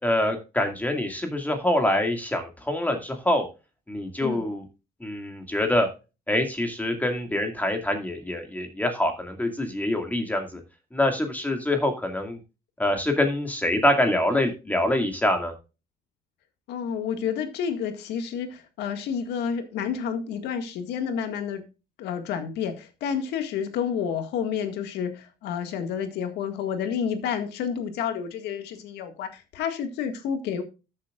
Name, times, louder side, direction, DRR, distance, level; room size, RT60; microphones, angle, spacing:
voice 1, 0.0-3.5 3.9-4.6 5.0-5.9 6.3-10.6 10.9-12.4 12.8-15.5, left 1 dB, 10° left, 2.1 m, -25 dB
voice 2, 4.2-4.5 16.7-21.6 22.0-30.6, left 7 dB, 80° left, 1.9 m, -30 dB
13.5 x 7.4 x 2.5 m
cardioid pair, 110°, 17 cm